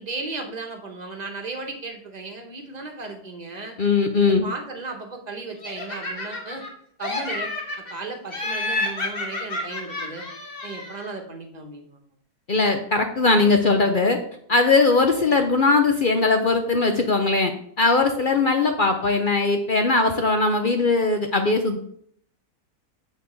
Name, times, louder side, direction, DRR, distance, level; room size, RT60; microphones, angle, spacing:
voice 1, 0.0-3.8 4.3-6.6 7.0-7.5 7.8-10.3 10.6-12.0, right 3 dB, 25° right, 3 dB, 1.2 m, -35 dB
voice 2, 3.8-4.5 12.5-14.2 14.5-21.8, left 3 dB, 60° left, 5 dB, 0.5 m, -20 dB
Laughter, 5.6-6.7 7.0-7.9 8.3-11.1, left 2 dB, 35° left, 1.5 m, -30 dB
8.0 x 4.1 x 6.6 m, 0.65 s
omnidirectional pair, 1.8 m